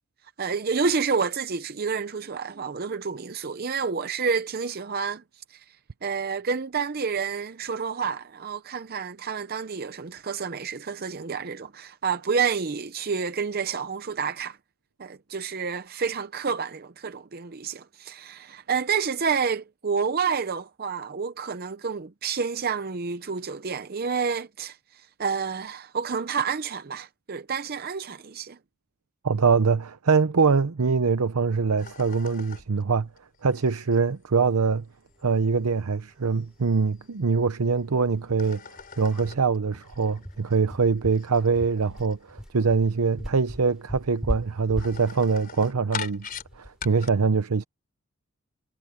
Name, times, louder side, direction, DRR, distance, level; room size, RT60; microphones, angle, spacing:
voice 1, 0.4-5.2 5.5-5.6 6.0-14.6 15.0-28.6, right 5 dB, 45° right, 0.6 m, -29 dB
voice 2, 29.2-33.1 33.4-34.8 35.2-38.6 39.0-46.3 46.6-47.6, right 5 dB, 85° right, 0.7 m, -23 dB
sound 1, 31.8-37.8 38.1-47.1, left 7 dB, 40° left, 4.0 m, -43 dB
Descending Stairs (from cupboard), 36.4-36.5 36.8-36.9 37.2-37.4 37.7-37.8 38.3-46.7, equal, 5° right, 3.4 m, -37 dB
head